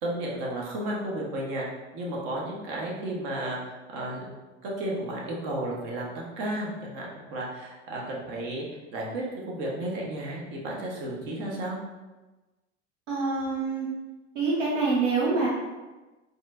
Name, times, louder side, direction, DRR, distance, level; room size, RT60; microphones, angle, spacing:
voice 1, 0.0-1.7 1.9-4.3 4.6-8.7 8.9-11.8, right 1 dB, 60° right, -3 dB, 1.2 m, -33 dB
voice 2, 13.1-13.9 14.3-15.5, right 3 dB, 85° right, -4 dB, 0.9 m, -26 dB
4.2 x 3.2 x 2.5 m, 1.2 s
hypercardioid pair, 85°, 36 cm